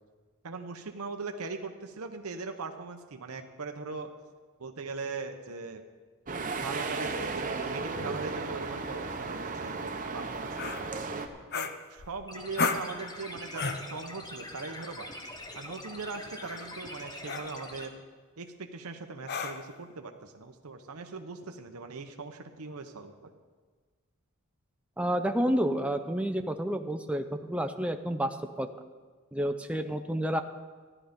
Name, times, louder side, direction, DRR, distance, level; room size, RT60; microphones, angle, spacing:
voice 1, 0.4-4.1 4.6-5.8 6.3-10.9 11.5-15.1 15.5-18.0 18.4-23.3, right 4 dB, 90° right, 6 dB, 0.8 m, -40 dB
sound 1, 6.3-11.3, right 3 dB, 35° right, 0.9 m, -35 dB
sound 2, 10.6-10.8 11.5-12.2 12.6-12.9 13.5-13.9 15.4-15.6 16.4-16.7 17.3-17.5 19.3-19.8, left 4 dB, 50° left, 0.7 m, -33 dB
sound 3, 12.3-17.9, left 1 dB, 20° left, 1.0 m, -44 dB
voice 2, 25.0-28.7 29.3-30.4, equal, 5° right, 7 dB, 0.5 m, -30 dB
14.0 x 11.0 x 5.2 m, 1.5 s
head